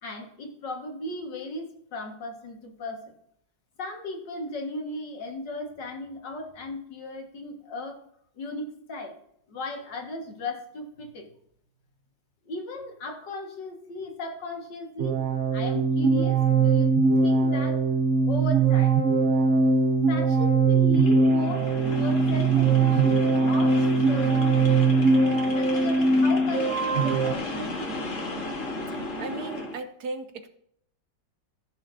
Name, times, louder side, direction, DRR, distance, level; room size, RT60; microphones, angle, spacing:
voice 1, 0.0-3.0 3.8-8.0 8.4-9.1 9.5-11.3 12.5-15.2 15.5-16.9 17.2-17.8 18.2-18.9 20.1-24.8 25.5-28.1, left 1 dB, 70° left, 2 dB, 2.2 m, -36 dB
sound 1, 15.0-27.4, right 4 dB, 90° right, 0.6 m, -21 dB
sound 2, 20.9-29.8, left 2 dB, 45° left, 1.7 m, -34 dB
voice 2, 29.2-30.5, right 3 dB, 65° right, 8 dB, 1.2 m, -36 dB
14.5 x 6.9 x 2.7 m, 0.71 s
omnidirectional pair, 2.0 m